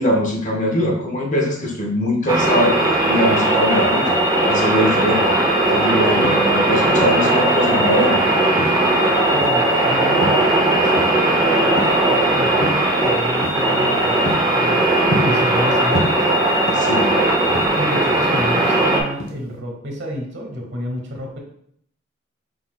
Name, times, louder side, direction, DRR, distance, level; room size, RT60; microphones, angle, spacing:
voice 1, 0.0-2.8 3.1-5.2 5.7-8.2 16.7-17.1, equal, 40° left, 1 dB, 0.8 m, -21 dB
sound 1, 2.3-19.0, right 1 dB, 20° right, 0.6 m, -18 dB
sound 2, 6.2-7.3 7.8-9.0 9.4-9.8 10.2-11.4 11.6-12.2 12.6-12.9 13.4-13.7 14.0-15.7 16.0-17.1 17.4-18.9 19.2-19.5, equal, 75° left, 0.9 m, -28 dB
voice 2, 9.3-14.8 15.1-16.3 17.7-21.4, equal, 65° right, 1 dB, 1.1 m, -30 dB
4.9 x 4.1 x 2.2 m, 0.67 s
head